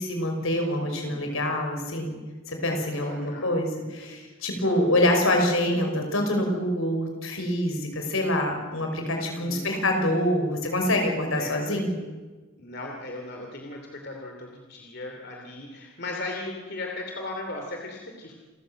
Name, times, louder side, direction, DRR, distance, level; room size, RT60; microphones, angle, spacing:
voice 1, 0.0-2.1 2.5-11.9, left 1 dB, 75° left, 3 dB, 5.2 m, -26 dB
voice 2, 0.7-1.7 2.9-3.5 4.6-4.9 5.6-5.9 9.1-9.8 11.4-11.6 12.6-18.3, left 2 dB, 50° left, 1 dB, 2.9 m, -38 dB
28.5 x 14.5 x 7.7 m, 1.3 s
head